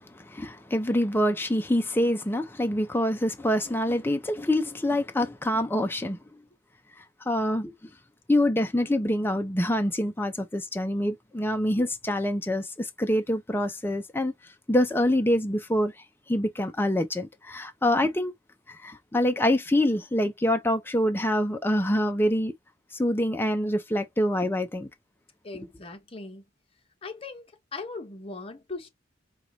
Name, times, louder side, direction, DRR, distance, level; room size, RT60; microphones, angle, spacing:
voice 1, 0.1-6.2 7.3-7.7 8.3-14.3 14.7-15.9 16.3-18.3 18.8-22.5 22.9-24.9, left 1 dB, 10° left, 0.6 m, -25 dB
voice 2, 25.4-26.4 27.0-28.9, left 3 dB, 30° left, 1.1 m, -39 dB
4.7 x 2.4 x 4.0 m
head